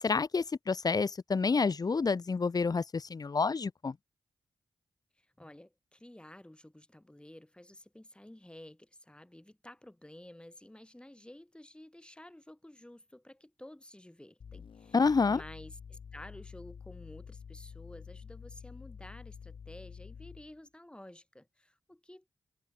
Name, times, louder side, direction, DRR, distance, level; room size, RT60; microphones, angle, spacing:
voice 1, 0.0-3.9 14.9-15.4, left 4 dB, 45° left, 0.9 m, -28 dB
voice 2, 5.2-22.3, left 1 dB, 10° left, 3.4 m, -52 dB
sound 1, 14.4-20.6, left 6 dB, 75° left, 5.8 m, -49 dB
cardioid pair, 45°, 9 cm